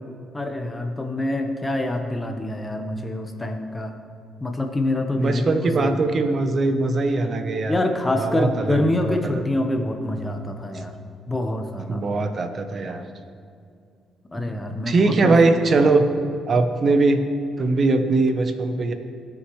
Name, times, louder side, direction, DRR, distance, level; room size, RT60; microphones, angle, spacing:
voice 1, 0.3-3.9 4.4-5.9 7.7-10.9 11.3-12.0 14.3-15.3, left 1 dB, 15° left, 4 dB, 1.1 m, -26 dB
voice 2, 5.2-7.8 8.1-9.4 11.9-13.1 14.9-16.0 16.5-17.2 17.6-18.9, right 3 dB, 45° right, 7 dB, 0.9 m, -21 dB
17.0 x 6.5 x 3.2 m, 2.4 s
cardioid pair, 90°, 0 cm